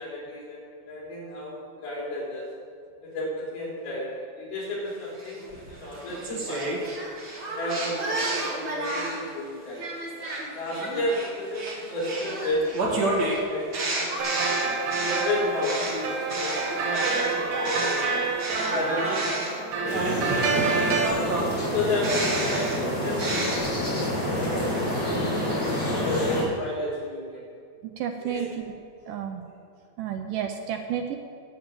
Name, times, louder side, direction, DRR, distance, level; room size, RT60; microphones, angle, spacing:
voice 1, 0.0-1.6 1.8-2.5 3.0-4.1 4.4-6.8 7.5-9.9 10.5-13.1 13.5-14.3 15.0-18.1 18.5-21.1 21.6-23.4 23.7-25.5 26.0-27.4 28.2-28.5, left 1 dB, 75° left, -5 dB, 5.4 m, -32 dB
sound 1, 5.2-9.3 9.8-18.1 18.4-23.6, right 2 dB, 45° right, 1.4 m, -31 dB
sound 2, 14.2-21.1, right 4 dB, 70° right, 3.4 m, -28 dB
sound 3, 19.8-26.4, left 1 dB, 25° left, 3.6 m, -28 dB
voice 2, 27.8-28.7 29.1-29.5 30.0-31.2, right 9 dB, 85° right, 4 dB, 1.9 m, -31 dB
10.0 x 8.7 x 6.9 m, 2.2 s
omnidirectional pair, 4.5 m